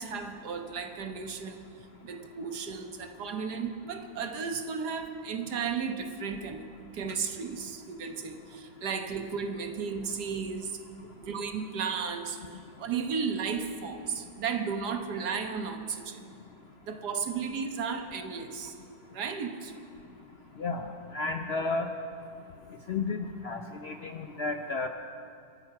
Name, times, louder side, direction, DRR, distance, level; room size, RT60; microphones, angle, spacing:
voice 1, 0.0-1.6 2.0-6.6 6.9-10.7 11.2-12.4 12.8-16.2 16.9-18.7 19.1-19.7, right 6 dB, 75° right, 6 dB, 1.7 m, -34 dB
voice 2, 20.6-21.9 22.9-24.9, left 3 dB, 55° left, 5 dB, 0.7 m, -32 dB
25.5 x 9.0 x 5.8 m, 2.4 s
omnidirectional pair, 1.8 m